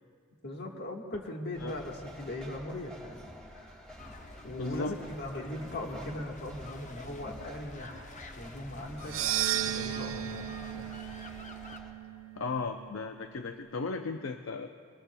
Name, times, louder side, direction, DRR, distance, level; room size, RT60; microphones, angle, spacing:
voice 1, 0.4-3.2 3.5-3.9 4.4-9.2 9.6-11.0, left 1 dB, 55° left, 1 dB, 1.5 m, -40 dB
sound 1, 1.5-11.9, equal, 5° left, 2.0 m, -50 dB
sound 2, 4.0-11.8, left 2 dB, 40° left, 0.8 m, -49 dB
voice 2, 4.6-5.0 12.4-14.7, left 4 dB, 70° left, 6 dB, 0.5 m, -35 dB
sound 3, 9.0-13.3, right 12 dB, 70° right, 0.5 m, -35 dB
23.0 x 19.5 x 2.2 m, 2.3 s
head